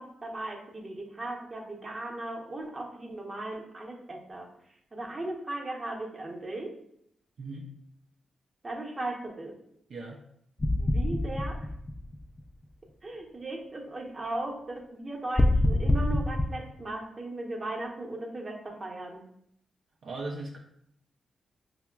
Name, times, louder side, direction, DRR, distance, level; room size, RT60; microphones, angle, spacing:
voice 1, 0.0-4.5 4.9-6.7 8.6-9.5 10.8-11.7 13.0-19.2, right 2 dB, 35° right, 0 dB, 0.8 m, -37 dB
voice 2, 9.9-10.2 20.0-20.6, right 2 dB, 70° right, -1 dB, 0.4 m, -38 dB
sound 1, 10.6-12.5 15.4-16.5, left 1 dB, 25° left, 0.3 m, -25 dB
5.6 x 2.1 x 2.2 m, 0.73 s
cardioid pair, 60°, 0 cm